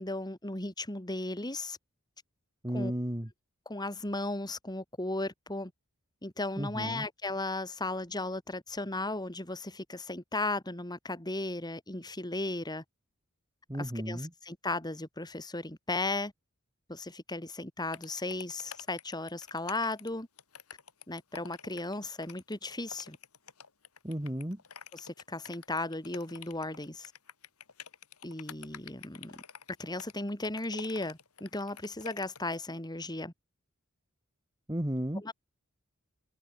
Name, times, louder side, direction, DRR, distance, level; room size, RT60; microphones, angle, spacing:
voice 1, 0.0-1.8 2.7-2.9 3.7-5.7 6.2-12.8 13.8-16.3 16.9-20.3 21.1-23.2 24.9-27.1 28.2-29.4 29.8-33.3 35.2-35.3, left 2 dB, 20° left, 3.6 m, -36 dB
voice 2, 2.6-3.3 6.6-7.0 13.7-14.3 24.0-24.6 34.7-35.2, equal, 15° right, 1.8 m, -33 dB
sound 1, 17.9-32.6, left 7 dB, 75° left, 3.8 m, -48 dB
head